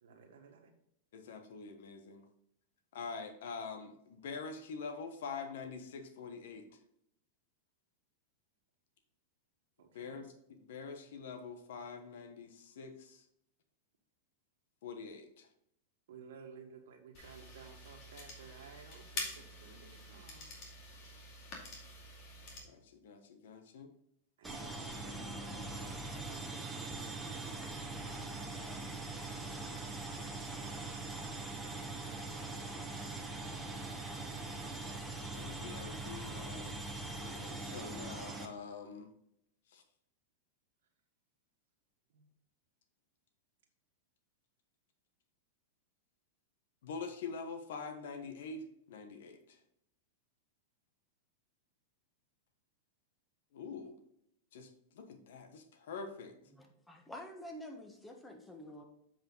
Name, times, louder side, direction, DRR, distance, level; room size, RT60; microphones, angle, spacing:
voice 1, 0.0-0.7 9.8-10.2 16.1-20.5 24.4-26.5 42.1-42.2, right 6 dB, 75° right, 4 dB, 1.5 m, -55 dB
voice 2, 1.1-2.3 2.9-6.7 9.9-10.3 10.7-13.2 14.8-15.5 22.7-23.9 35.0-36.8 37.2-39.1 39.7-39.8 46.8-49.6 53.5-54.0 54.5-56.4, left 5 dB, 70° left, 7 dB, 1.2 m, -45 dB
sound 1, 17.1-22.6, left 2 dB, 45° left, 2.3 m, -47 dB
sound 2, 24.4-38.5, right 2 dB, 5° right, 1.2 m, -42 dB
voice 3, 56.5-58.8, left 1 dB, 10° left, 3 dB, 1.4 m, -48 dB
7.8 x 4.9 x 3.9 m, 0.74 s
hypercardioid pair, 115°, 0 cm